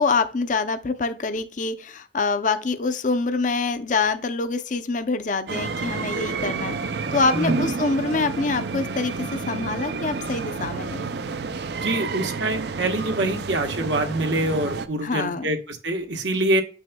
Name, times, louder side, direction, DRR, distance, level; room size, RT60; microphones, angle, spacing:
voice 1, 0.0-6.7 7.1-11.1 15.0-15.5, left 4 dB, 40° left, 0.5 m, -25 dB
sound 1, 5.5-14.9, right 4 dB, 60° right, 0.5 m, -30 dB
voice 2, 7.3-7.7 11.8-16.6, right 1 dB, 75° right, 1.2 m, -25 dB
6.9 x 6.2 x 2.2 m
head